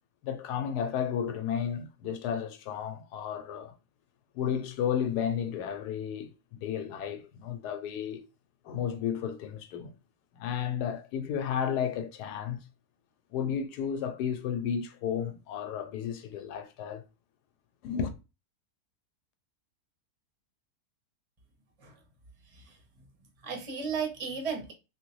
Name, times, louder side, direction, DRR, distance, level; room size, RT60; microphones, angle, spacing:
voice 1, 0.2-3.7 4.3-8.2 8.6-9.9 10.3-12.6 13.3-17.0 17.8-18.1, left 8 dB, 90° left, 1.2 m, -33 dB
voice 2, 23.4-24.7, right 6 dB, 30° right, 0.7 m, -34 dB
3.2 x 2.6 x 3.1 m
omnidirectional pair, 1.7 m